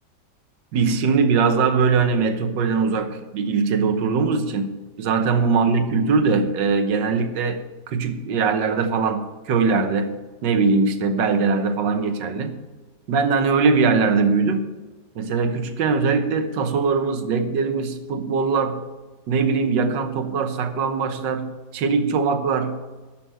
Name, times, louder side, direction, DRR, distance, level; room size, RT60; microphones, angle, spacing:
voice 1, 0.7-12.6 13.1-14.7 15.1-18.8 19.3-22.8, right 4 dB, 80° right, 8 dB, 1.7 m, -21 dB
13.0 x 6.0 x 7.8 m, 1.3 s
omnidirectional pair, 1.9 m